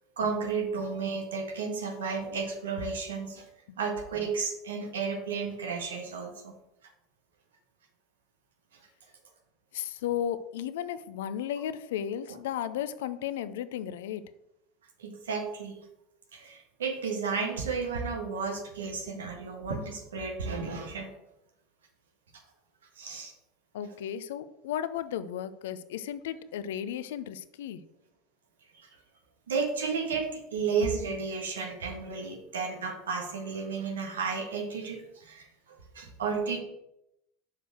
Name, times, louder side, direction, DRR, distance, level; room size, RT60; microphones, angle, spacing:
voice 1, 0.2-3.4 3.8-6.5 15.0-15.8 16.3-21.1 23.0-23.3 28.7-28.9 29.5-36.6, right 5 dB, 80° right, 2 dB, 1.7 m, -33 dB
voice 2, 9.7-14.2 23.7-27.8, left 10 dB, 70° left, 13 dB, 0.6 m, -34 dB
6.6 x 5.1 x 6.4 m, 0.85 s
hypercardioid pair, 75°, 0 cm